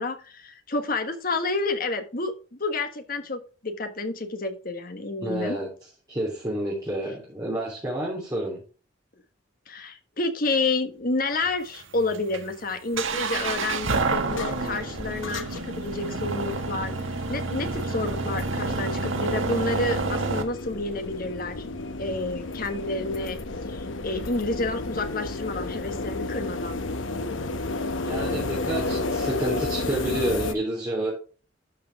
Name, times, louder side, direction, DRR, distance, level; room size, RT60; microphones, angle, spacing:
voice 1, 0.0-5.6 9.7-21.6 22.0-23.4 23.7-26.7, left 3 dB, 45° left, 8 dB, 1.4 m, -30 dB
voice 2, 5.2-5.7 6.1-8.6 28.0-31.1, right 1 dB, 20° right, -6 dB, 3.2 m, -29 dB
sound 1, 11.3-20.4, right 3 dB, 85° right, 1.5 m, -29 dB
sound 2, 12.9-30.5, left 2 dB, 75° left, 0.9 m, -33 dB
12.0 x 5.7 x 3.6 m, 0.35 s
head